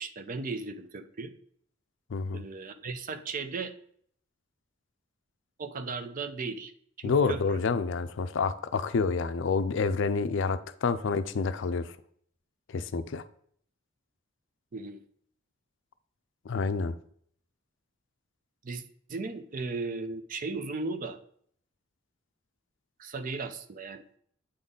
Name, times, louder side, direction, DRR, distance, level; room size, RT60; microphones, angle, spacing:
voice 1, 0.0-1.3 2.3-3.7 5.6-6.7 7.0-7.6 14.7-15.0 18.6-18.8 19.1-21.2 23.0-24.0, right 4 dB, 45° right, 11 dB, 0.5 m, -36 dB
voice 2, 2.1-2.4 7.0-11.9 12.7-13.2 16.5-16.9, left 4 dB, 65° left, 12 dB, 0.4 m, -28 dB
8.5 x 4.0 x 3.7 m, 0.62 s
head